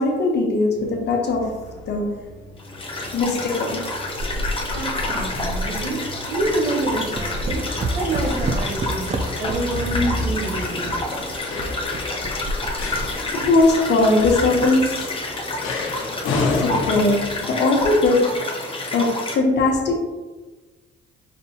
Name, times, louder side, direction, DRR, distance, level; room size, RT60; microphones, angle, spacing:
voice 1, 0.0-1.6 1.9-2.2 3.1-3.8 13.4-15.0 16.4-18.3 18.9-20.0, left 2 dB, 60° left, 1 dB, 0.9 m, -20 dB
sound 1, 0.8-17.4, left 3 dB, 80° left, 0.6 m, -32 dB
sound 2, 2.6-19.4, left 2 dB, 25° left, 0.8 m, -29 dB
sound 3, 3.1-15.1, right 1 dB, 35° right, 0.4 m, -31 dB
voice 2, 4.7-7.6 7.9-11.0, right 2 dB, 75° right, -2 dB, 1.3 m, -27 dB
5.3 x 2.6 x 2.7 m, 1.2 s
cardioid pair, 90°, 20 cm